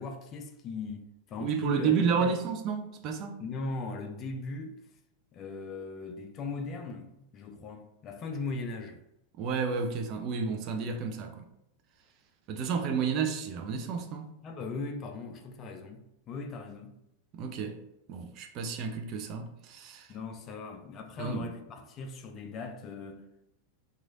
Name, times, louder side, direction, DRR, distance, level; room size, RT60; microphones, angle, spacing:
voice 1, 0.0-2.3 3.4-4.8 5.3-9.0 14.4-16.9 20.1-23.2, left 3 dB, 30° left, 0.4 m, -39 dB
voice 2, 1.4-3.4 9.4-11.5 12.5-14.3 17.3-17.8 18.1-20.1 21.2-21.5, right 6 dB, 35° right, 0.4 m, -31 dB
3.1 x 2.4 x 3.7 m
figure-of-eight pair, 90°, 0 cm